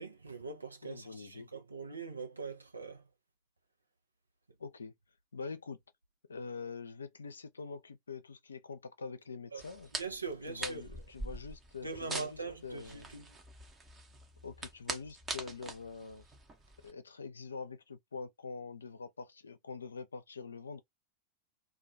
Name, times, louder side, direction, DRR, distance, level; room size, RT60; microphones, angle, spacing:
voice 1, 0.0-3.0 9.5-9.6 9.9-10.8 11.8-13.4, right 4 dB, 80° right, 0.6 m, -42 dB
voice 2, 0.8-1.5 4.6-4.9 5.3-5.8 6.3-9.9 10.5-13.1 14.4-16.2 16.8-20.8, left 4 dB, 75° left, 0.4 m, -44 dB
sound 1, 9.6-16.9, right 3 dB, 20° right, 0.7 m, -44 dB
2.2 x 2.2 x 2.6 m
figure-of-eight pair, 90°, 0 cm